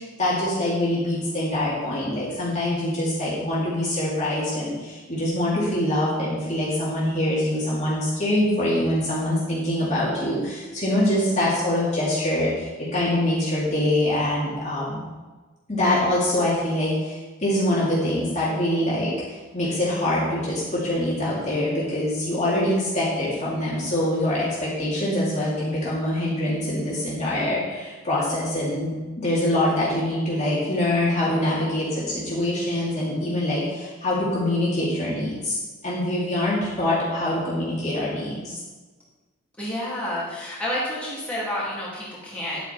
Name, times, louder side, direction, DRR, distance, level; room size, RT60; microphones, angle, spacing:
voice 1, 0.0-15.0 15.7-35.6 35.8-38.6, left 1 dB, 30° left, -7 dB, 2.7 m, -24 dB
voice 2, 39.6-42.6, left 1 dB, 5° left, -9 dB, 3.2 m, -29 dB
11.0 x 8.6 x 4.5 m, 1.3 s
head